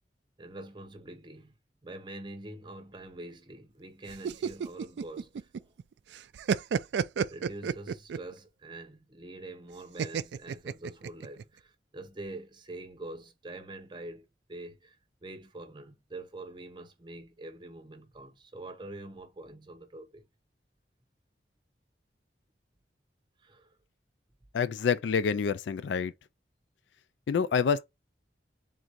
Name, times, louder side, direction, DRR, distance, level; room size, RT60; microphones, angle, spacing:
voice 1, 0.4-1.6 1.8-5.7 7.3-15.0 15.2-20.3 23.4-23.8, right 2 dB, 25° right, 0.7 m, -45 dB
sound 1, 4.1-5.8 6.1-8.3 10.0-11.4, right 6 dB, 75° right, 0.3 m, -31 dB
voice 2, 24.5-26.1 27.3-27.8, left 6 dB, 85° left, 0.4 m, -27 dB
3.7 x 2.6 x 4.5 m
head